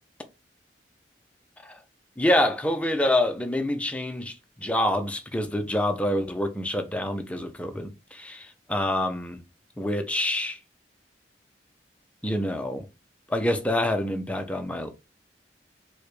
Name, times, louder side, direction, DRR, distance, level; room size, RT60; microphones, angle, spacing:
voice 1, 2.2-4.3 4.6-9.4 9.8-10.6 12.2-12.8 13.3-14.9, left 1 dB, 5° left, 0.4 m, -26 dB
4.7 x 2.1 x 3.0 m
head